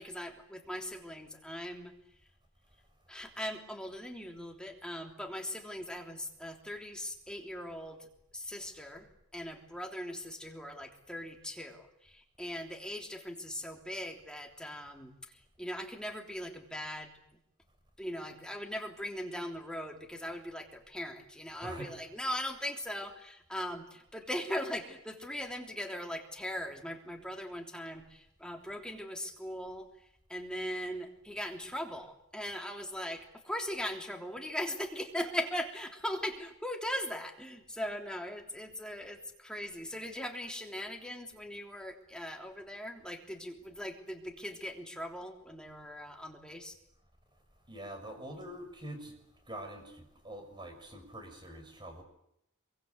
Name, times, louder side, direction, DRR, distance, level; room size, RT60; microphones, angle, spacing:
voice 1, 0.0-1.9 3.1-17.1 18.0-46.8, equal, 5° left, 2 dB, 3.2 m, -40 dB
voice 2, 47.7-49.1 49.5-52.0, right 1 dB, 20° right, 6 dB, 6.0 m, -45 dB
26.0 x 24.0 x 8.2 m, 0.78 s
head